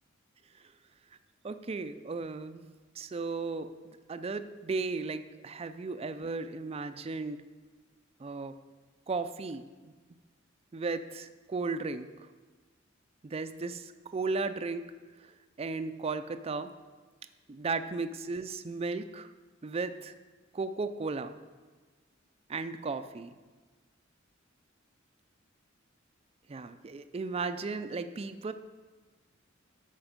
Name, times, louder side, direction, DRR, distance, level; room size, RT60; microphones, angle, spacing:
voice 1, 1.4-2.6 3.0-7.4 8.2-8.5 9.1-9.9 10.7-12.1 13.2-14.8 15.6-16.7 17.5-19.3 19.6-20.1 20.5-21.4 22.5-23.3 26.5-28.5, right 4 dB, 30° right, 10 dB, 0.4 m, -35 dB
13.0 x 5.2 x 5.1 m, 1.3 s
head